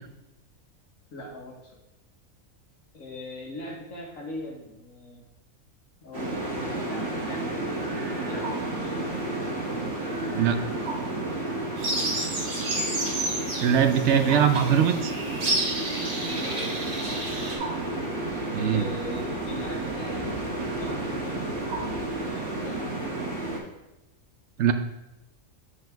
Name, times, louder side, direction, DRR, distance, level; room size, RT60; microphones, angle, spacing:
voice 1, 1.1-1.8 2.9-5.2 6.0-7.9 8.2-9.2 11.9-12.2 16.2-17.2 18.7-23.3, left 1 dB, 75° left, -2 dB, 1.7 m, -41 dB
sound 1, 6.1-23.6, right 2 dB, 50° right, 2.3 m, -31 dB
sound 2, 11.8-17.5, right 2 dB, 90° right, 2.4 m, -31 dB
voice 2, 13.6-15.1 18.5-18.9 24.6-24.7, right 8 dB, 65° right, 8 dB, 0.8 m, -21 dB
7.7 x 4.9 x 4.4 m, 0.96 s
omnidirectional pair, 1.5 m